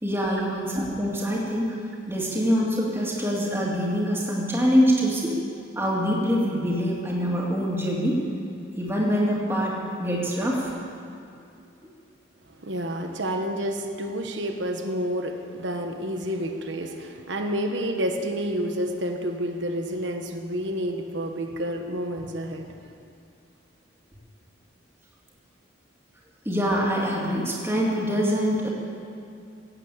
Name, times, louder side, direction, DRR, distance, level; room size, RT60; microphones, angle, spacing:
voice 1, 0.0-1.8 2.0-5.3 5.8-8.2 8.7-10.7 26.4-28.7, equal, 10° right, -4 dB, 2.5 m, -24 dB
voice 2, 12.6-22.9, equal, 70° right, 4 dB, 1.4 m, -29 dB
16.5 x 8.3 x 8.5 m, 2.5 s
head